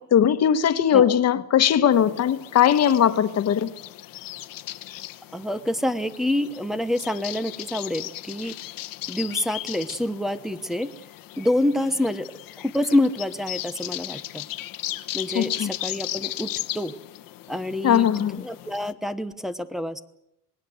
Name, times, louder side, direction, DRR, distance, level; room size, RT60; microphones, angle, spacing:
voice 1, 0.1-3.7 15.3-15.7 17.8-18.4, left 9 dB, 50° left, 11 dB, 1.4 m, -19 dB
sound 1, 1.9-18.9, left 15 dB, 90° left, 1.3 m, -37 dB
voice 2, 5.3-8.6 9.1-10.9 11.4-12.3 12.6-14.4 15.1-16.9 17.5-18.1 18.4-20.0, left 1 dB, ahead, 8 dB, 1.0 m, -27 dB
26.5 x 20.0 x 7.8 m, 0.81 s
cardioid pair, 160°, 33 cm